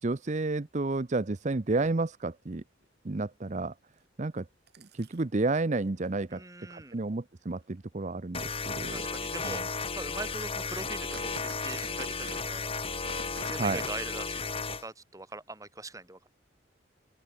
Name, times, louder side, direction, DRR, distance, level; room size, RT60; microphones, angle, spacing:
voice 1, 0.0-2.6 3.0-3.7 4.2-4.5 4.8-6.4 6.7-9.0 9.4-9.6 13.6-13.8, right 3 dB, 40° right, 0.7 m, -31 dB
sound 1, 0.8-0.9 1.3-1.6 2.1-2.2 2.6-2.9 4.0-4.1 4.7-5.2 6.0-6.1 6.7-6.9 7.5-7.6 8.3-8.5 9.1-9.2 9.6-9.7 9.9-10.1 10.4-14.1 14.4-14.5 15.3-15.4, right 4 dB, 60° right, 5.5 m, -48 dB
voice 2, 6.3-7.0 8.9-9.6 10.0-12.7 13.4-16.3, right 2 dB, 15° right, 4.0 m, -42 dB
sound 2, 8.3-14.9, left 4 dB, 30° left, 2.6 m, -34 dB
open air
head